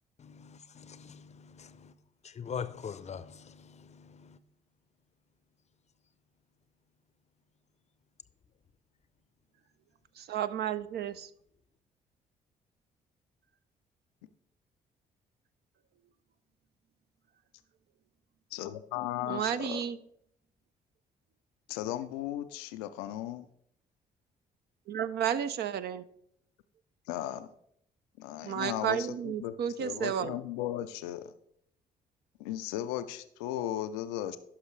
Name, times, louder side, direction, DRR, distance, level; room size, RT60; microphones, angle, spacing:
voice 1, 0.2-1.9 2.2-4.4, left 7 dB, 35° left, 0.6 m, -43 dB
voice 2, 10.2-11.3 19.3-20.0 24.9-26.0 28.4-30.4, right 9 dB, 60° right, 0.5 m, -32 dB
voice 3, 18.5-19.8 21.7-23.5 27.1-27.5 28.2-31.3 32.4-34.4, left 12 dB, 80° left, 0.4 m, -36 dB
11.5 x 5.6 x 3.2 m
hypercardioid pair, 45°, 19 cm